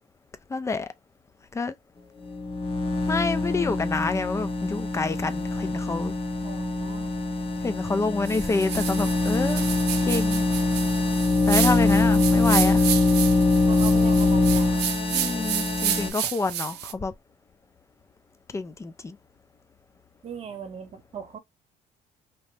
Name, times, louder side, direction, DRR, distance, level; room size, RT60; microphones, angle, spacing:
voice 1, 0.5-0.9 1.5-1.7 3.1-6.1 7.6-9.6 10.0-10.4 11.5-12.8 15.1-17.1 18.5-19.2, left 3 dB, 15° left, 0.4 m, -28 dB
sound 1, 2.2-16.1, left 2 dB, 30° left, 0.8 m, -23 dB
voice 2, 6.4-7.1 13.7-14.8 20.2-21.4, right 6 dB, 35° right, 1.0 m, -39 dB
sound 2, 8.3-16.9, right 11 dB, 80° right, 0.5 m, -31 dB
2.9 x 2.0 x 3.1 m
cardioid pair, 110°, 17 cm